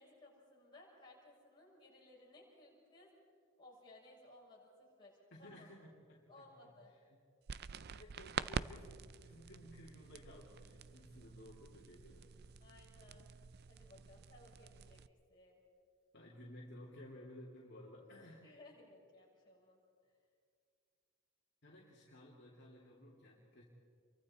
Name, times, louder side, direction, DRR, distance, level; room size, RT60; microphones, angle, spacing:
voice 1, 0.0-3.1 3.6-5.7 6.3-6.9 12.6-13.3 13.7-15.0 15.3-15.6 18.4-19.8, left 2 dB, 20° left, -5 dB, 6.4 m, -61 dB
voice 2, 5.4-6.7 7.9-12.3 16.1-18.4 21.6-23.6, left 1 dB, 50° left, -4 dB, 2.7 m, -56 dB
sound 1, 7.5-15.1, right 6 dB, 45° right, 0.4 m, -47 dB
28.5 x 23.5 x 4.3 m, 2.3 s
head